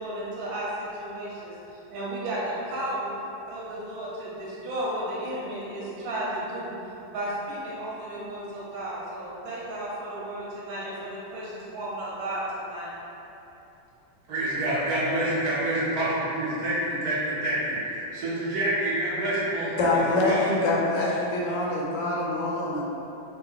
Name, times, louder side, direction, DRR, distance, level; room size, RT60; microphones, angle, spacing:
voice 1, 0.0-3.1 3.4-6.7 7.1-12.9, right 1 dB, 85° right, -7 dB, 1.6 m, -33 dB
voice 2, 14.3-20.4, right 1 dB, 60° right, -9 dB, 1.2 m, -27 dB
voice 3, 19.8-22.8, left 2 dB, 75° left, -5 dB, 1.2 m, -25 dB
4.5 x 2.1 x 3.3 m, 3.0 s
omnidirectional pair, 2.1 m